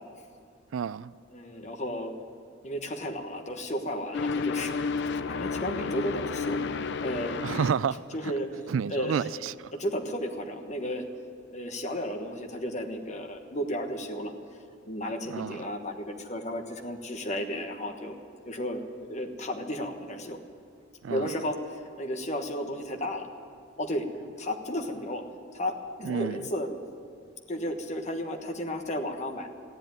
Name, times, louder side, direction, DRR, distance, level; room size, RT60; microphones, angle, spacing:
voice 1, 0.7-1.1 7.4-8.3 8.7-9.7 15.3-15.6 21.0-21.3 26.0-26.4, right 7 dB, 85° right, 0.4 m, -30 dB
voice 2, 1.3-2.1 2.6-4.7 5.1-6.6 7.0-7.4 8.1-8.5 8.9-9.2 9.7-11.0 11.5-14.3 14.9-18.1 18.5-18.8 19.1-20.4 21.1-23.3 23.8-24.1 24.4-25.2 25.5-25.7 26.0-26.7 27.5-29.5, equal, 35° left, 1.3 m, -33 dB
sound 1, 4.1-7.7, left 4 dB, 60° left, 0.6 m, -31 dB
14.0 x 10.5 x 9.1 m
head